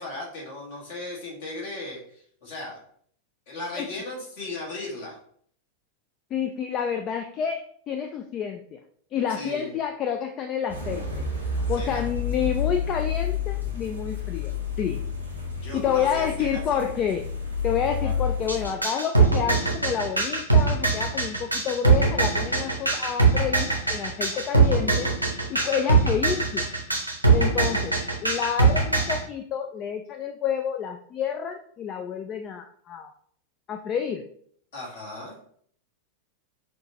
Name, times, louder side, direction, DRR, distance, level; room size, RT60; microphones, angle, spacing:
voice 1, 0.0-2.8 3.5-5.2 9.3-9.7 11.8-12.0 15.5-16.8 18.0-18.1 24.3-24.4 25.5-25.9 34.7-35.3, left 2 dB, 50° left, -3 dB, 1.6 m, -37 dB
voice 2, 6.3-8.8 9.1-11.1 11.5-14.5 14.8-15.0 15.7-17.3 17.6-25.1 25.5-26.7 27.3-28.0 28.2-33.1 33.7-34.2, left 8 dB, 30° left, 6 dB, 0.3 m, -29 dB
sound 1, 10.7-18.7, left 5 dB, 90° left, 1.1 m, -30 dB
sound 2, 18.5-29.2, right 4 dB, 90° right, 0.7 m, -21 dB
6.1 x 2.4 x 2.8 m, 0.62 s
figure-of-eight pair, 90°, 0 cm